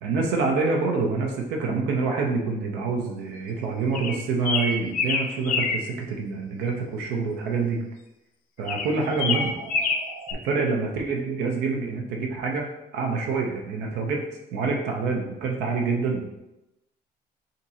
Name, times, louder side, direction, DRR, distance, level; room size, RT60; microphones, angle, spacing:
voice 1, 0.0-7.8 8.6-9.6 10.4-14.2 14.5-16.2, right 4 dB, 85° right, 1 dB, 0.7 m, -26 dB
sound 1, 3.9-5.9 8.7-10.3, left 4 dB, 55° left, 0.5 m, -26 dB
sound 2, 9.2-10.4, right 5 dB, 45° right, 0.4 m, -40 dB
5.1 x 2.8 x 2.8 m, 0.93 s
cardioid pair, 110°, 17 cm